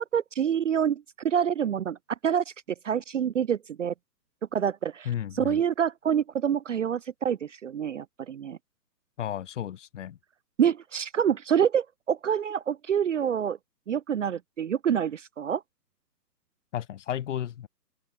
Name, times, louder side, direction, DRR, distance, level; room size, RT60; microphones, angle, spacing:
voice 1, 0.0-2.0 2.2-2.4 2.8-3.9 4.5-5.1 5.4-8.6 10.6-13.6 13.9-15.6, right 8 dB, 50° right, 0.6 m, -27 dB
voice 2, 5.0-5.6 9.2-10.2 16.7-17.7, left 10 dB, 45° left, 4.6 m, -33 dB
open air
figure-of-eight pair, 140°, 50 cm